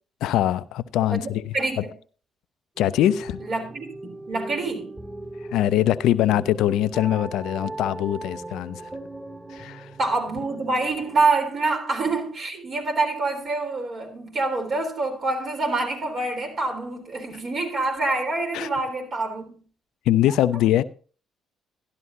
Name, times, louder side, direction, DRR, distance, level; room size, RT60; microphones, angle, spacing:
voice 1, 0.2-1.8 2.8-3.4 5.5-8.9 9.5-9.9 18.5-18.7 20.1-20.8, left 12 dB, 75° left, 0.4 m, -22 dB
voice 2, 1.1-1.9 3.4-3.9 4.2-4.9 10.0-19.6, right 3 dB, 55° right, 3.8 m, -26 dB
sound 1, 2.8-11.2, right 2 dB, 20° right, 2.3 m, -38 dB
12.5 x 12.0 x 2.8 m
hypercardioid pair, 50°, 0 cm